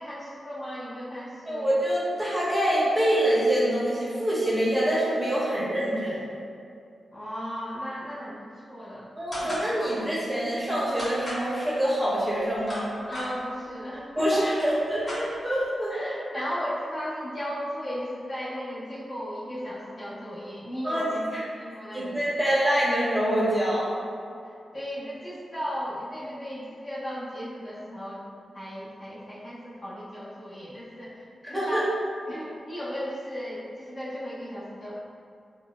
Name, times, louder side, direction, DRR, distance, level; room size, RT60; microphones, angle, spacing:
voice 1, 0.0-1.7 7.1-9.1 9.3-10.0 13.1-14.7 15.9-21.2 21.6-22.5 24.4-28.2 28.5-31.1 31.5-31.8 32.3-35.0, equal, 45° left, -9 dB, 0.8 m, -36 dB
voice 2, 1.5-6.2 9.2-12.9 14.2-15.9 20.8-21.5 21.9-23.9 31.5-31.8, right 1 dB, 10° right, -7 dB, 0.7 m, -25 dB
sound 1, 9.3-9.7 11.0-11.5 12.4-13.3 14.1-14.2 14.4-15.6, left 1 dB, 25° left, 1.3 m, -36 dB
3.8 x 2.1 x 2.3 m, 2.4 s
wide cardioid pair, 95°, 0 cm